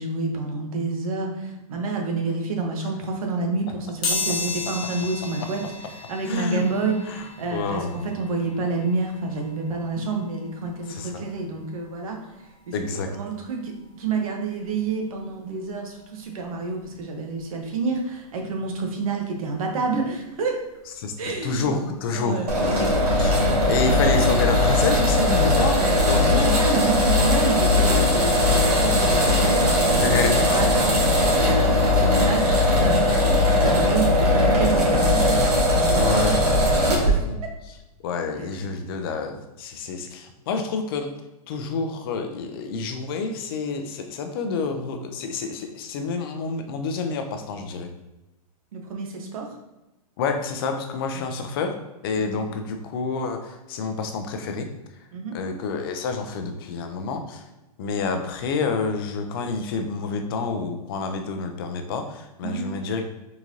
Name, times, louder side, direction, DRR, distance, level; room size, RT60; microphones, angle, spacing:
voice 1, 0.0-12.2 12.7-20.6 21.2-23.2 23.5-24.0 25.8-26.3 26.6-30.7 31.4-35.4 35.9-36.2 36.9-37.2 37.4-37.5 38.5-38.7 48.7-49.6 51.1-51.3 52.2-52.4 55.1-55.4 62.4-62.6, right 3 dB, 65° right, 2 dB, 0.8 m, -29 dB
sound 1, 4.0-14.7 15.2-15.3 16.4-16.5 16.8-18.9 19.2-21.9 22.2-22.4 22.7-22.8, left 3 dB, 20° left, 0.8 m, -36 dB
voice 2, 6.2-6.6 7.1-8.2 10.9-11.2 12.7-13.1 21.0-21.1 21.4-25.8 26.1-26.5 29.9-30.6 36.0-36.6 36.9-37.3 37.7-37.8 38.0-41.1 41.5-47.9 50.2-51.7 52.0-54.7 55.3-57.4 57.8-63.1, left 4 dB, 40° left, 5 dB, 0.4 m, -28 dB
sound 2, 22.5-37.1, left 1 dB, 90° right, 1.3 m, -19 dB
3.7 x 2.5 x 2.9 m, 1.0 s
hypercardioid pair, 155°, 19 cm